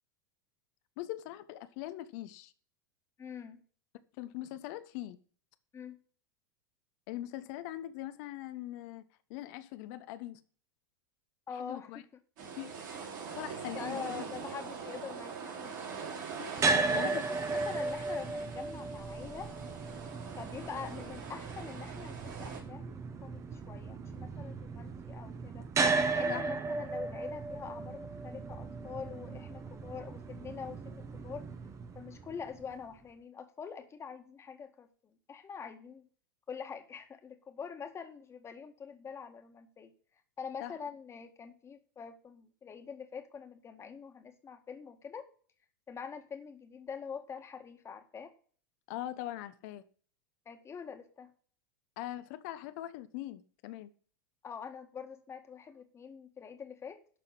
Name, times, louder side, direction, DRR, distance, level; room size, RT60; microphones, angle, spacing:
voice 1, 1.0-2.5 4.2-5.2 7.1-9.0 9.3-10.4 11.5-12.0 12.6-12.7 13.4-14.2 16.4-17.2 26.3-26.5 40.6-40.7 48.9-49.8 52.0-53.9, left 14 dB, 55° left, 1.1 m, -41 dB
voice 2, 3.2-3.6 5.7-6.0 11.5-11.9 13.7-15.9 16.8-19.5 20.4-25.7 26.1-31.4 32.0-36.1 36.5-39.9 40.4-45.3 45.9-48.3 50.5-51.3 54.4-57.0, left 6 dB, 25° left, 1.9 m, -45 dB
sound 1, 12.4-22.6, right 6 dB, 60° right, 4.7 m, -43 dB
sound 2, 16.6-32.7, right 3 dB, 25° right, 1.3 m, -35 dB
12.0 x 4.1 x 7.6 m
hypercardioid pair, 90°, 11 cm